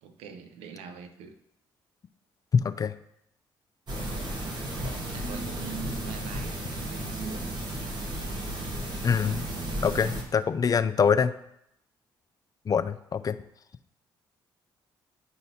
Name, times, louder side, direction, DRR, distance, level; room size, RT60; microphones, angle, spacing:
voice 1, 0.0-1.4 4.0-4.2 4.8-6.6 6.9-7.6, right 5 dB, 85° right, 8 dB, 0.6 m, -42 dB
voice 2, 2.5-2.9 9.0-9.4 9.8-11.3 12.7-13.4, left 6 dB, 40° left, 12 dB, 0.4 m, -24 dB
sound 1, 3.9-10.2, right 1 dB, 50° right, 1.5 m, -34 dB
10.0 x 4.1 x 2.8 m, 0.78 s
supercardioid pair, 60°, 10 cm